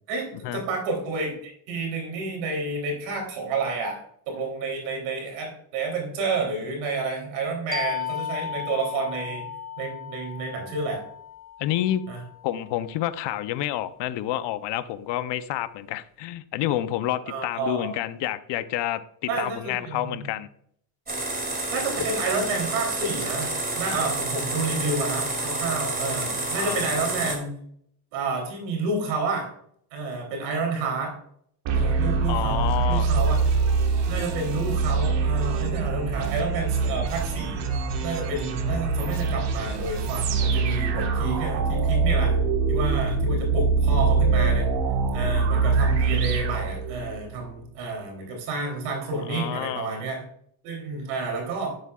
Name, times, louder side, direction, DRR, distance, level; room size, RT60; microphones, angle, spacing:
voice 1, 0.1-4.0 4.3-11.0 12.1-12.2 17.2-17.9 19.3-20.2 21.7-27.5 28.1-29.5 29.9-31.1 31.7-33.3 34.1-42.3 42.7-44.7 45.1-50.2 50.6-51.7, right 3 dB, 90° right, 2 dB, 3.4 m, -30 dB
sound 1, 7.7-13.0, left 9 dB, 20° left, 0.7 m, -36 dB
voice 2, 11.6-12.0 12.4-20.5 26.6-26.8 32.3-33.1 49.3-49.9, left 13 dB, 60° left, 13 dB, 0.7 m, -29 dB
sound 2, 21.1-27.4, right 2 dB, 20° right, 2.6 m, -29 dB
sound 3, 31.6-47.3, right 4 dB, 55° right, 1.6 m, -24 dB
10.0 x 7.5 x 2.4 m, 0.66 s
supercardioid pair, 110°, 49 cm